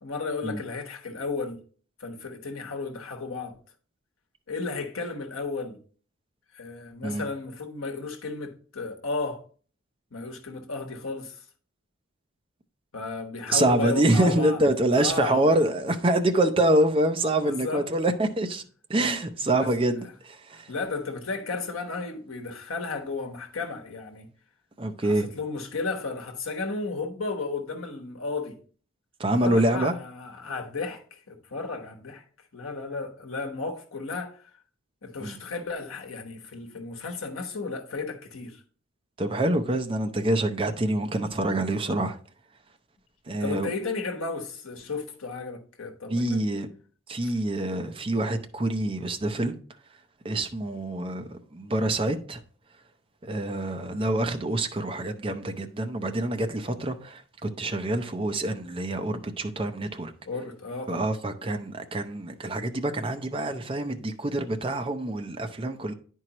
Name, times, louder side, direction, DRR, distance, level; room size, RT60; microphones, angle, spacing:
voice 1, 0.0-1.6 2.0-3.5 4.5-5.8 6.5-9.4 10.1-11.4 12.9-14.6 14.9-15.5 17.4-17.9 19.5-19.7 20.0-20.1 20.7-24.3 25.0-28.6 29.4-32.2 32.5-34.4 35.0-38.6 43.4-46.5 47.2-47.3 60.2-61.1, left 3 dB, 80° left, 1.1 m, -34 dB
voice 2, 13.5-18.6 18.9-20.7 24.8-25.3 29.2-29.9 35.2-35.4 39.2-42.2 43.3-43.7 46.1-46.7 47.1-49.5 50.2-52.4 53.2-60.1 60.9-65.9, right 1 dB, 25° right, 0.5 m, -26 dB
9.8 x 4.6 x 2.9 m
head